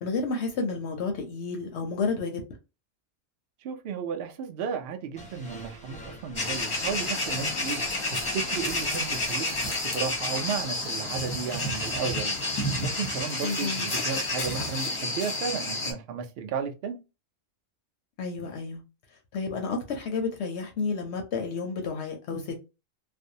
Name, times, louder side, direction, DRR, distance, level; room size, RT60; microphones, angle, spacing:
voice 1, 0.0-2.4 13.4-13.9 18.2-18.8 19.3-22.6, left 4 dB, 65° left, 0.7 m, -31 dB
voice 2, 3.6-7.8 8.1-9.5 9.8-12.3 12.8-17.0, right 6 dB, 65° right, 0.6 m, -34 dB
sound 1, 5.1-11.2, right 2 dB, 10° left, 0.3 m, -46 dB
sound 2, 6.3-15.9, left 2 dB, 30° left, 0.7 m, -30 dB
2.5 x 2.0 x 2.6 m
omnidirectional pair, 1.4 m